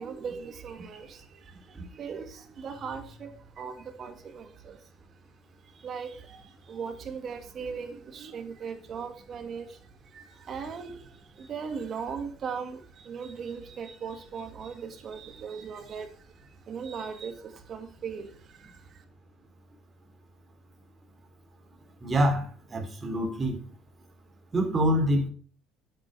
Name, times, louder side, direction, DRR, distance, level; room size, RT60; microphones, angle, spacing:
voice 1, 0.0-4.8 5.7-19.0, right 6 dB, 40° right, 2.3 m, -39 dB
voice 2, 22.0-23.6 24.5-25.3, equal, 20° right, 3.1 m, -26 dB
8.9 x 8.6 x 5.0 m
cardioid pair, 125°, 0 cm